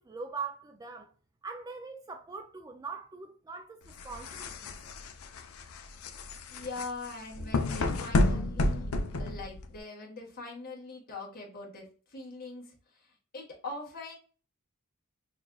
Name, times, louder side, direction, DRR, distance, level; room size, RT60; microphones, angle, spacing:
voice 1, 0.1-1.1 1.4-4.8, right 5 dB, 15° right, 0.3 m, -42 dB
sound 1, 3.9-9.8, left 2 dB, 70° left, 0.6 m, -30 dB
voice 2, 6.5-8.9 9.2-14.1, left 3 dB, 45° left, 1.5 m, -42 dB
6.1 x 2.4 x 2.3 m
head